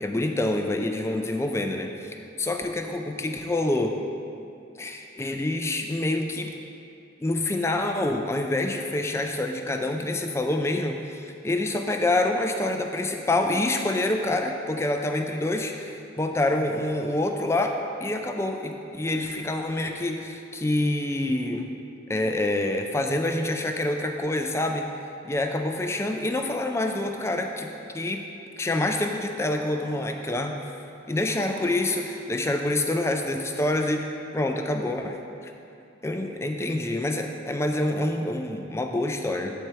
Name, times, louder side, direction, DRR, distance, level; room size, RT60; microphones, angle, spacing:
voice 1, 0.0-4.0 4.8-6.5 7.2-21.7 22.1-24.9 25.2-27.7 27.9-28.2 28.6-30.6 31.1-34.1 34.3-35.2 35.4-35.5 36.0-39.5, left 2 dB, 15° left, 4 dB, 0.3 m, -27 dB
sound 1, 29.0-30.4 30.9-32.5, left 1 dB, 30° left, 1.2 m, -48 dB
7.8 x 4.4 x 4.7 m, 2.6 s
head